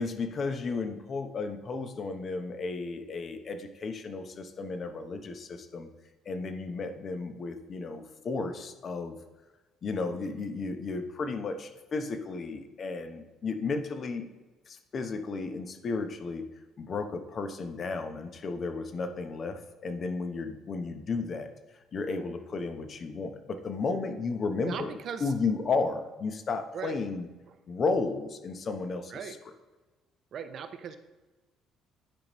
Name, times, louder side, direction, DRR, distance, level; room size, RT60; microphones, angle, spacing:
voice 1, 0.0-5.9 6.3-9.2 9.8-14.3 14.7-16.5 16.8-21.5 21.9-24.9 25.2-27.3 27.7-29.4, left 4 dB, 45° left, 8 dB, 0.8 m, -33 dB
voice 2, 24.6-25.3 26.7-27.0 27.5-27.6 29.1-29.4 30.3-31.0, right 7 dB, 55° right, 9 dB, 0.7 m, -38 dB
10.0 x 5.2 x 3.1 m, 1.2 s
hypercardioid pair, 50°, 0 cm